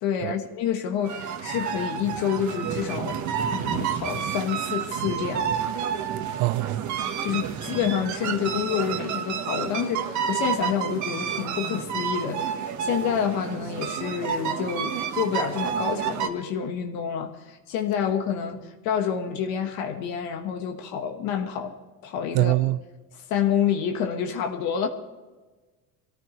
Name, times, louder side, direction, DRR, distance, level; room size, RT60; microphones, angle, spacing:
voice 1, 0.0-3.2 3.5-5.5 7.2-12.5 12.8-21.7 22.0-22.5 23.1-24.9, left 8 dB, 75° left, 1.4 m, -28 dB
sound 1, 1.0-16.3, right 7 dB, 50° right, 1.4 m, -30 dB
voice 2, 6.4-6.9 22.3-22.8, right 19 dB, 85° right, 0.6 m, -23 dB
23.5 x 14.0 x 3.2 m
cardioid pair, 135°, 36 cm